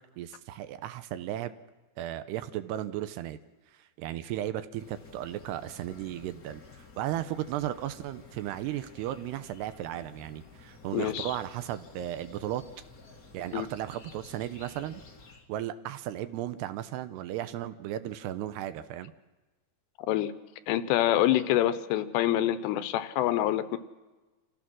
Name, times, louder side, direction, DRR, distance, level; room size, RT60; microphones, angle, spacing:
voice 1, 0.2-1.5 2.0-3.4 4.0-6.6 7.0-12.6 13.3-15.0 15.5-19.1, right 12 dB, 80° right, 12 dB, 2.7 m, -35 dB
sound 1, 4.7-15.5, left 4 dB, 55° left, 0.9 m, -52 dB
voice 2, 10.9-11.4 13.5-13.7 20.1-20.3 20.7-23.8, left 13 dB, 80° left, 12 dB, 2.9 m, -26 dB
28.0 x 15.5 x 6.2 m, 1.2 s
omnidirectional pair, 5.0 m